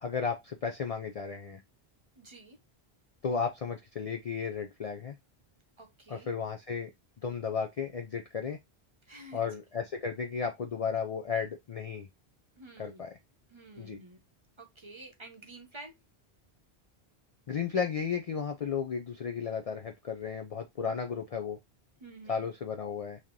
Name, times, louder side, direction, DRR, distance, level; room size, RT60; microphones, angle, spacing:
voice 1, 0.0-1.6 3.2-5.2 6.1-6.9 7.2-8.6 9.3-12.1 12.8-13.1 13.8-14.0 17.5-21.6 22.3-23.2, left 6 dB, 55° left, 0.4 m, -34 dB
voice 2, 2.2-2.6 5.8-6.3 9.1-9.5 12.6-13.0 13.5-14.2 14.6-15.9 22.0-22.5, right 2 dB, 30° right, 0.7 m, -49 dB
3.2 x 2.8 x 3.5 m
omnidirectional pair, 1.1 m